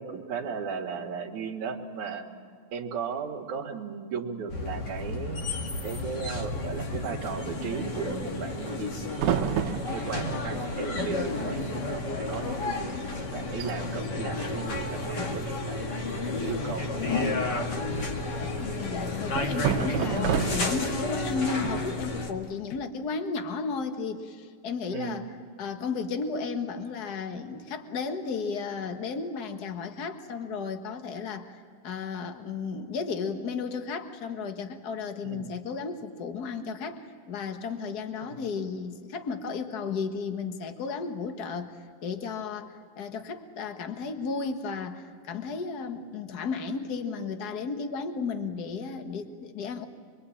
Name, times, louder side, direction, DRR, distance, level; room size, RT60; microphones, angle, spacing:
voice 1, 0.0-2.2 2.7-5.5 5.8-13.0 13.3-16.0 16.4-17.3 24.9-25.3 35.2-35.5 38.2-38.4, right 6 dB, 60° right, 0 dB, 2.8 m, -36 dB
sound 1, 4.5-22.3, left 2 dB, 35° left, 1.9 m, -32 dB
sound 2, 9.1-10.3 11.2-11.3 11.5-11.9 12.2-12.4 12.9-13.0 13.4-13.7 14.8-15.4 17.4-18.3 19.3-20.9, right 8 dB, 80° right, 2.7 m, -30 dB
sound 3, 16.4-22.8, left 11 dB, 75° left, 1.8 m, -45 dB
voice 2, 18.6-25.3 25.6-41.7 42.0-49.8, left 5 dB, 55° left, 7 dB, 1.1 m, -34 dB
25.0 x 23.5 x 8.8 m, 2.1 s
omnidirectional pair, 4.1 m